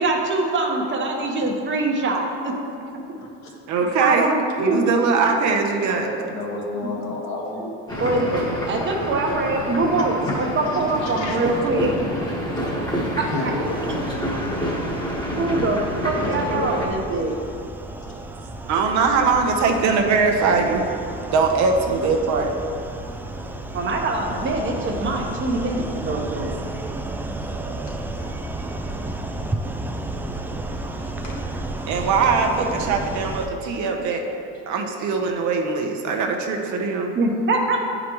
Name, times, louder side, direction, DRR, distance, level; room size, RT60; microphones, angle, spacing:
voice 1, 0.0-2.5 4.0-4.8 6.8-6.9 8.0-11.9 13.2-13.5 13.8-14.0 15.4-17.3 23.7-26.6 37.1-37.8, right 2 dB, 35° right, 1 dB, 1.0 m, -23 dB
voice 2, 3.7-4.3 4.6-6.1 18.6-20.8 21.3-22.5 31.9-34.2 34.7-37.1, right 4 dB, 65° right, 3 dB, 0.9 m, -21 dB
voice 3, 5.9-8.3 10.2-10.4 11.0-11.4 13.2-13.8 14.4-14.7 16.1-17.3 18.0-18.2 27.9-28.0 30.3-30.5 30.9-31.4, left 2 dB, 60° left, -2 dB, 1.6 m, -32 dB
sound 1, 7.9-16.9, equal, 15° left, 1.3 m, -28 dB
sound 2, 13.6-33.5, right 2 dB, 5° right, 0.4 m, -32 dB
9.2 x 5.0 x 3.0 m, 2.5 s
supercardioid pair, 105°, 32 cm